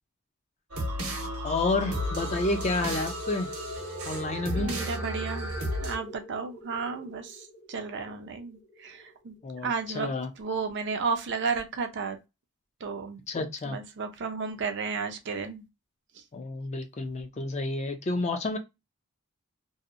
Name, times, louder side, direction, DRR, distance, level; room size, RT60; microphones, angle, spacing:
sound 1, 0.7-6.0, equal, 70° right, 0.9 m, -33 dB
voice 1, 1.4-3.5 4.1-4.7 9.4-10.3 13.3-13.8 16.3-18.6, left 2 dB, 30° left, 0.4 m, -30 dB
sound 2, 1.8-10.1, left 1 dB, 85° left, 1.0 m, -44 dB
voice 2, 4.6-5.5 5.8-9.4 9.6-10.1 10.4-12.2 12.8-13.2 13.7-15.7 16.1-16.2, right 5 dB, 55° right, 0.5 m, -33 dB
2.7 x 2.0 x 2.5 m
head